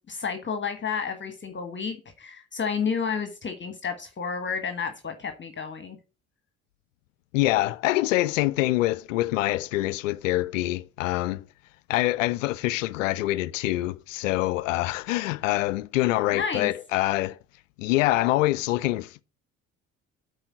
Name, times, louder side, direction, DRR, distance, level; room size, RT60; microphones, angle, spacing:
voice 1, 0.1-6.0 16.3-16.7, left 6 dB, 25° left, 1.4 m, -31 dB
voice 2, 7.3-11.4 11.9-17.4 17.8-19.2, left 17 dB, 70° left, 0.5 m, -25 dB
8.7 x 4.7 x 7.2 m
figure-of-eight pair, 55°, 41 cm